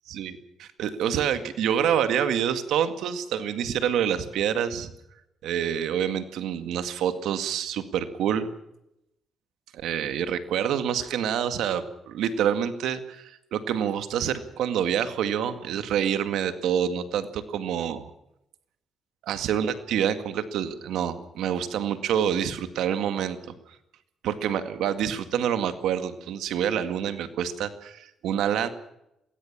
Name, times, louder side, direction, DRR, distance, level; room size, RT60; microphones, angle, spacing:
voice 1, 0.1-4.9 5.4-8.5 9.7-18.1 19.2-23.4 24.2-28.7, right 9 dB, 80° right, 10 dB, 2.0 m, -27 dB
22.5 x 16.5 x 7.3 m, 0.84 s
cardioid pair, 90°, 0 cm